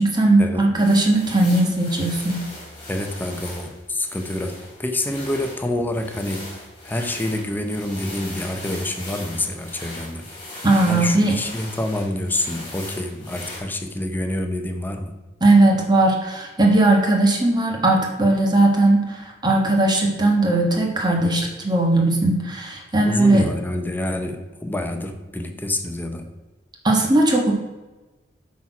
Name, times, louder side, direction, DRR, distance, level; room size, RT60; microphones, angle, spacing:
voice 1, 0.0-2.4 10.6-11.4 15.4-23.4 26.8-27.5, right 2 dB, 25° right, 1 dB, 1.4 m, -18 dB
sound 1, 0.8-13.6, left 2 dB, 30° left, 3.0 m, -39 dB
voice 2, 2.9-6.5 6.8-10.3 10.9-15.1 23.1-26.3, left 1 dB, 10° left, 5 dB, 0.8 m, -27 dB
8.3 x 4.3 x 6.0 m, 1.1 s
head